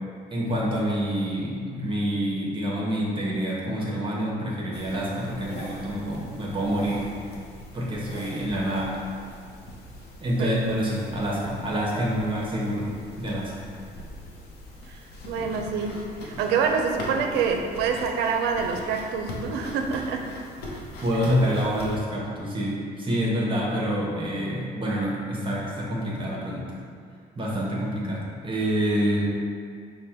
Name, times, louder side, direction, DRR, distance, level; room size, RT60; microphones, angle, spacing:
voice 1, 0.3-7.1 7.7-9.0 10.2-12.9 13.2-13.5 21.0-26.6 27.4-29.3, equal, 30° right, -4 dB, 0.8 m, -27 dB
sound 1, 4.7-22.0, left 1 dB, 75° left, 0.8 m, -41 dB
voice 2, 15.3-20.2, right 5 dB, 90° right, 3 dB, 0.4 m, -26 dB
5.2 x 2.2 x 4.3 m, 2.2 s
cardioid pair, 110°, 17 cm